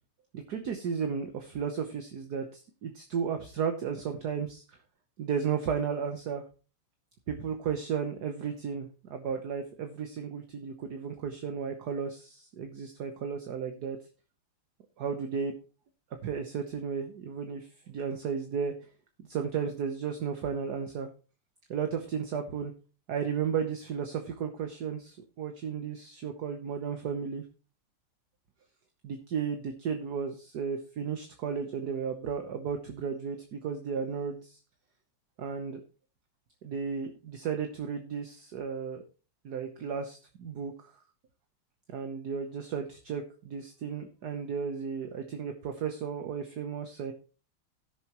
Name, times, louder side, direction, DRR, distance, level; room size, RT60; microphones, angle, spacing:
voice 1, 0.3-4.6 5.2-6.4 7.3-14.0 15.0-15.5 16.2-18.7 19.3-21.1 21.7-22.7 23.1-27.4 29.0-34.6 35.4-35.8 36.6-39.0 39.4-40.7 41.9-47.1, right 6 dB, 55° right, 6 dB, 1.4 m, -34 dB
16.5 x 7.1 x 3.0 m, 0.34 s
omnidirectional pair, 2.4 m